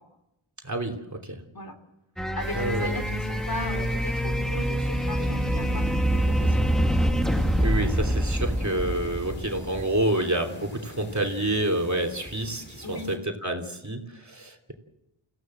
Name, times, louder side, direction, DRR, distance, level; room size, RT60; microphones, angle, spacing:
voice 1, 0.6-1.4 2.5-3.0 7.6-14.7, right 1 dB, 35° right, 2 dB, 3.0 m, -28 dB
sound 1, 2.2-10.0, equal, ahead, 1.8 m, -26 dB
voice 2, 2.3-6.7 12.8-13.1, left 1 dB, 45° left, 3 dB, 3.4 m, -37 dB
sound 2, 2.4-13.2, equal, 20° left, 4.4 m, -47 dB
29.0 x 16.5 x 7.7 m, 0.90 s
wide cardioid pair, 60°, 49 cm